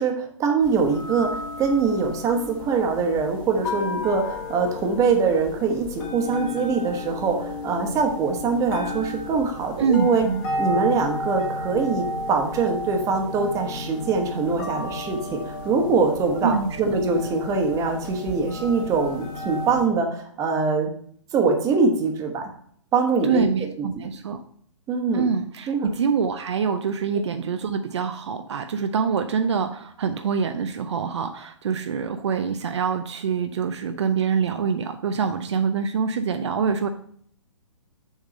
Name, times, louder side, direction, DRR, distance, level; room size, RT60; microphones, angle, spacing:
voice 1, 0.0-10.3 10.6-20.9 21.3-22.5 22.9-23.7 23.9-24.1 24.9-25.2 25.7-25.9, right 4 dB, 20° right, 3 dB, 1.2 m, -23 dB
sound 1, 0.6-19.9, left 1 dB, 35° left, 1.9 m, -33 dB
voice 2, 9.8-10.5 16.4-16.8 23.2-24.4 25.1-36.9, right 6 dB, 60° right, 7 dB, 0.6 m, -25 dB
7.1 x 3.6 x 5.3 m, 0.62 s
figure-of-eight pair, 125°, 16 cm